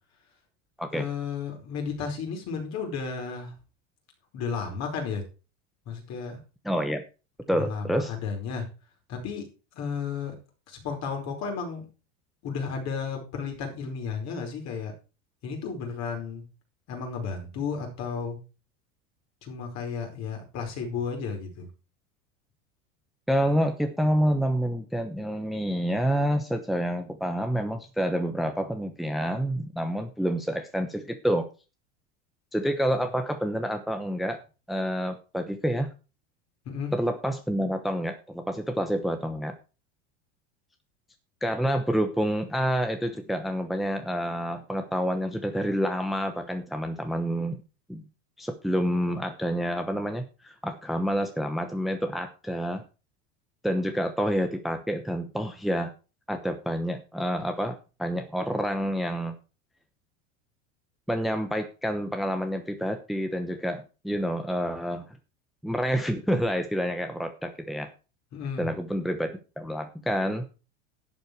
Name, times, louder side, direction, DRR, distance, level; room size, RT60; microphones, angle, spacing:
voice 1, 0.9-3.5 4.3-5.2 5.9-6.4 7.5-8.7 9.1-9.5 9.7-10.3 10.7-11.9 12.4-14.9 15.4-16.4 16.9-18.4 19.4-21.7 32.9-33.1 36.6-36.9 68.3-68.7, left 5 dB, 45° left, 3 dB, 4.9 m, -33 dB
voice 2, 6.6-7.0 7.5-8.1 23.3-31.5 32.5-34.4 34.7-35.9 36.9-39.5 41.4-47.6 47.9-48.0 48.4-52.8 53.6-55.9 56.3-59.3 61.1-65.2 65.6-67.9 68.6-70.4, equal, ahead, 7 dB, 0.9 m, -28 dB
12.0 x 7.9 x 4.6 m, 0.33 s
supercardioid pair, 125°, 37 cm